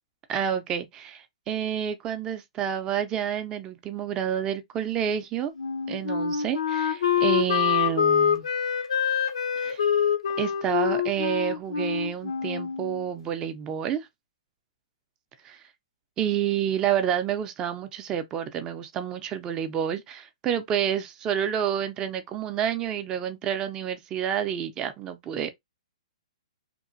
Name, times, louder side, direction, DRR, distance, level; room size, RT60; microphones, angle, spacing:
voice 1, 0.3-5.5 5.9-8.5 9.6-9.8 10.4-14.1 15.4-15.6 16.2-25.5, right 9 dB, 20° right, 0.4 m, -29 dB
Wind instrument woodwind instrument, 5.6-13.1, left 8 dB, 75° left, 0.5 m, -25 dB
2.9 x 2.1 x 2.6 m
hypercardioid pair, 145°, 3 cm